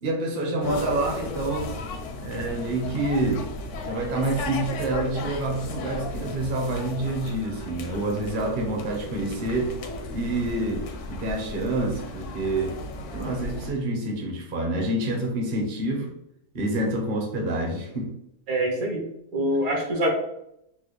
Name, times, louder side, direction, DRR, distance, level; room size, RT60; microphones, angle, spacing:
voice 1, 0.0-1.7 2.2-3.5 3.8-9.8 10.1-12.8 13.1-16.1 16.5-18.2, right 2 dB, 45° right, 0 dB, 0.7 m, -27 dB
sound 1, 0.6-13.7, left 2 dB, 70° left, 0.7 m, -35 dB
voice 2, 18.5-20.1, right 1 dB, 65° right, 0 dB, 1.3 m, -25 dB
4.0 x 2.3 x 3.1 m, 0.78 s
omnidirectional pair, 1.7 m